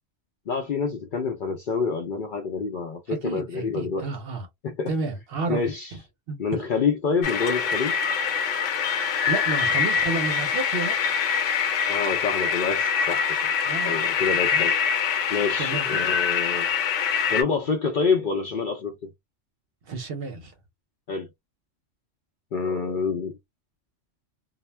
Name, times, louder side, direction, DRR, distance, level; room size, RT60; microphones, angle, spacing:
voice 1, 0.5-4.1 4.6-4.9 5.5-5.9 6.4-8.0 11.9-13.5 13.8-14.8 15.3-16.7 17.3-19.0 21.1-21.3 22.5-23.4, left 5 dB, 60° left, 0.6 m, -27 dB
voice 2, 3.1-4.5 4.9-6.0 6.3-6.4 9.2-11.0 13.7-13.9 14.5-14.6 15.6-15.9 19.9-20.5, right 3 dB, 60° right, 0.8 m, -31 dB
sound 1, 7.2-17.4, left 6 dB, 75° left, 1.0 m, -24 dB
2.2 x 2.1 x 3.1 m
omnidirectional pair, 1.3 m